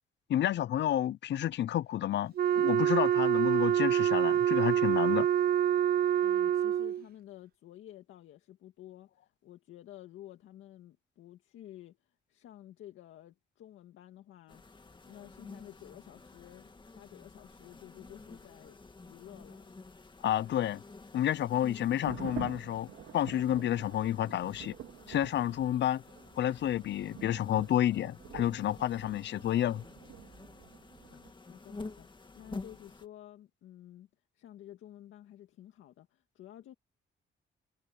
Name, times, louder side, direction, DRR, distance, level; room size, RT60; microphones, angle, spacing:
voice 1, 0.3-5.3 20.2-20.8 21.1-22.9 23.1-24.8 25.1-26.0 26.4-29.8, left 11 dB, 65° left, 0.7 m, -30 dB
Wind instrument woodwind instrument, 2.4-7.0, right 10 dB, 50° right, 0.4 m, -26 dB
voice 2, 6.2-14.8 15.1-16.7 17.0-18.8 19.0-19.7 31.4-34.1 34.3-36.7, left 12 dB, 80° left, 2.0 m, -52 dB
sound 1, 14.5-33.1, left 3 dB, 25° left, 2.2 m, -50 dB
sound 2, 21.8-31.3, right 11 dB, 80° right, 2.2 m, -48 dB
cardioid pair, 90°, 20 cm